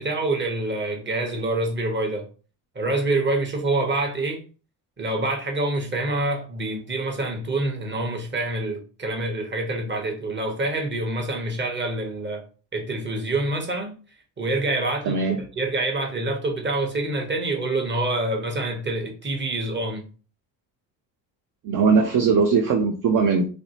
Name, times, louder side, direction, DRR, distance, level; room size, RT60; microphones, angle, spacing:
voice 1, 0.0-2.3 2.7-4.4 5.0-12.4 12.7-13.9 14.4-20.0, right 2 dB, 20° right, 1.0 m, -26 dB
voice 2, 15.0-15.4 21.6-23.5, right 5 dB, 40° right, 0.5 m, -20 dB
2.5 x 2.0 x 2.8 m
hypercardioid pair, 55°, 50 cm